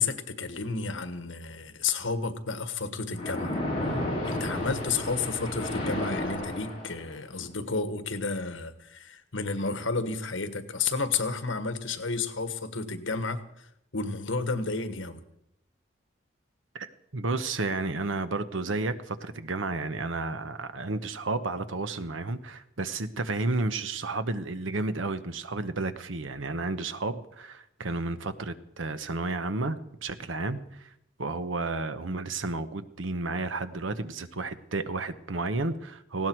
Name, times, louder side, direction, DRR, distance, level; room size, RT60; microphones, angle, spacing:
voice 1, 0.0-3.9 4.2-13.7 13.9-15.2, left 4 dB, 85° left, 1.5 m, -31 dB
Splash splatter, 3.1-7.2, left 1 dB, 30° left, 5.5 m, -32 dB
voice 2, 16.7-30.9 31.2-36.3, right 3 dB, 85° right, 1.0 m, -32 dB
18.5 x 17.0 x 4.6 m
head